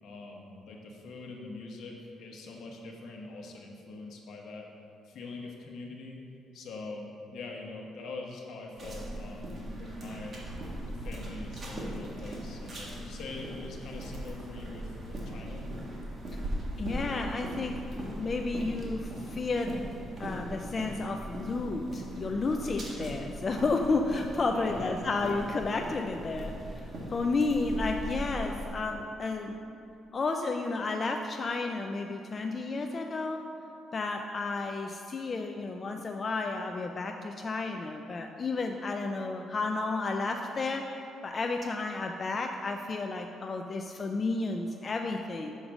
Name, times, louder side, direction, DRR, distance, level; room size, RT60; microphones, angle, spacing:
voice 1, 0.0-4.7 5.0-6.2 6.5-10.4 10.9-15.7 24.5-25.0, left 3 dB, 70° left, 0 dB, 1.1 m, -43 dB
sound 1, 8.8-28.7, right 1 dB, 35° right, 1.6 m, -39 dB
voice 2, 16.8-19.7 20.2-29.6 30.1-33.4 33.9-40.8 41.2-45.6, left 3 dB, 30° left, 3 dB, 0.3 m, -32 dB
6.5 x 4.9 x 6.0 m, 2.6 s
cardioid pair, 135°, 0 cm